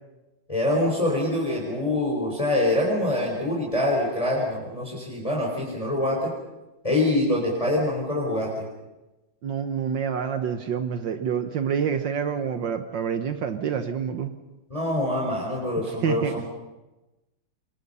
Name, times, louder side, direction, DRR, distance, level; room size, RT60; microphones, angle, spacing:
voice 1, 0.5-6.3 6.8-8.6 14.7-16.5, left 1 dB, 15° left, -3 dB, 4.4 m, -25 dB
voice 2, 9.4-14.3 16.0-16.3, right 7 dB, 65° right, 8 dB, 1.7 m, -27 dB
27.5 x 23.0 x 5.6 m, 1.0 s
omnidirectional pair, 2.2 m